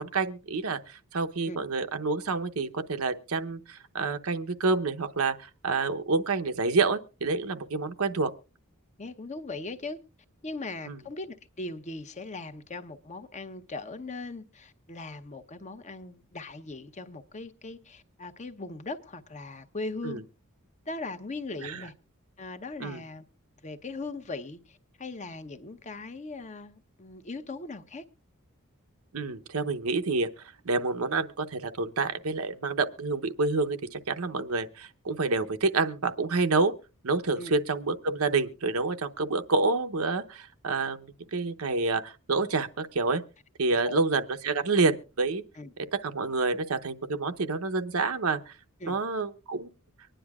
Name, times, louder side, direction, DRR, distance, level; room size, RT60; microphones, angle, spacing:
voice 1, 0.0-8.3 10.9-11.0 20.0-20.2 21.6-21.8 22.8-23.0 29.1-30.3 30.6-36.7 37.0-43.2 43.6-45.4 45.9-48.5 48.9-49.7, right 3 dB, 75° right, 0.8 m, -28 dB
voice 2, 9.0-10.0 10.4-20.2 20.9-21.9 22.4-23.3 23.6-28.0 37.4-37.5 43.8-44.0 45.6-45.7 48.8-49.0, left 3 dB, 35° left, 0.8 m, -39 dB
24.0 x 10.0 x 2.4 m
head